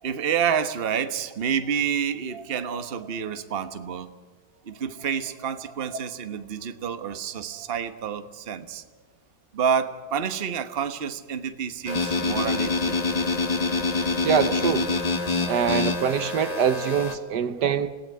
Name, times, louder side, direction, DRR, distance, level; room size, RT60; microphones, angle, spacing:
voice 1, 0.0-4.1 4.7-8.9 9.5-12.9 15.4-15.7, right 7 dB, 35° right, 1.2 m, -29 dB
sound 1, 11.9-17.2, left 3 dB, 20° left, 1.6 m, -26 dB
voice 2, 14.2-14.9 15.5-17.9, right 7 dB, 70° right, 1.5 m, -24 dB
26.5 x 17.5 x 9.5 m
omnidirectional pair, 1.9 m